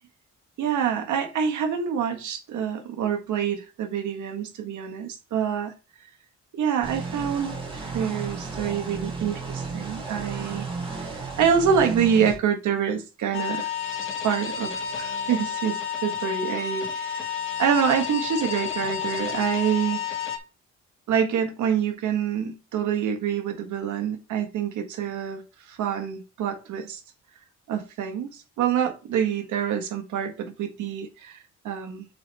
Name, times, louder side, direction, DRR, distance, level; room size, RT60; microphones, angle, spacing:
voice 1, 0.6-5.7 6.5-10.7 11.0-11.1 11.4-13.7 14.2-17.3 17.6-20.0 21.1-27.0 27.7-32.1, right 8 dB, 75° right, 1.6 m, -26 dB
sound 1, 6.8-12.3, right 4 dB, 15° right, 2.3 m, -33 dB
sound 2, 13.3-20.4, left 7 dB, 40° left, 1.4 m, -30 dB
7.6 x 4.3 x 3.4 m
cardioid pair, 90°, 30 cm